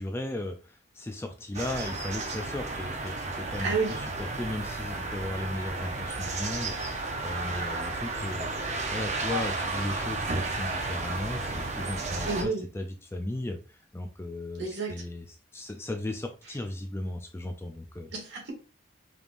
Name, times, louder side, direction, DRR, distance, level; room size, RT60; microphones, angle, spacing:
voice 1, 0.0-8.5 8.9-15.2 15.5-18.1, left 1 dB, 10° left, 5 dB, 0.3 m, -36 dB
sound 1, 1.5-12.4, right 3 dB, 35° right, 0.7 m, -33 dB
voice 2, 3.6-4.0 12.3-12.6 14.6-15.0 18.1-18.5, right 4 dB, 60° right, 0 dB, 1.5 m, -30 dB
5.1 x 3.2 x 2.5 m, 0.34 s
head